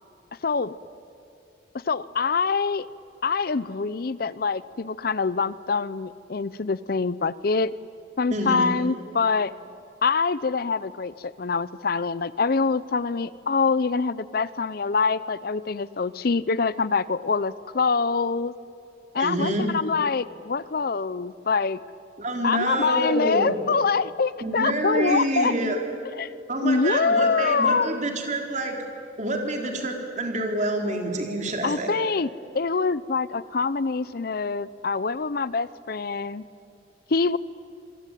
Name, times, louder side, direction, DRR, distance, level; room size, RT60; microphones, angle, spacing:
voice 1, 0.4-0.7 1.7-2.9 3.2-7.7 8.2-9.5 10.0-18.5 19.1-21.8 22.4-25.5 26.2-26.4 26.6-28.0 31.6-36.4 37.1-37.4, left 4 dB, 55° left, 17 dB, 0.6 m, -25 dB
voice 2, 8.3-8.7 19.2-19.7 22.2-23.5 24.4-25.8 26.5-28.8 29.2-32.0, right 1 dB, 40° right, 2 dB, 4.1 m, -27 dB
27.5 x 23.0 x 9.2 m, 2.6 s
head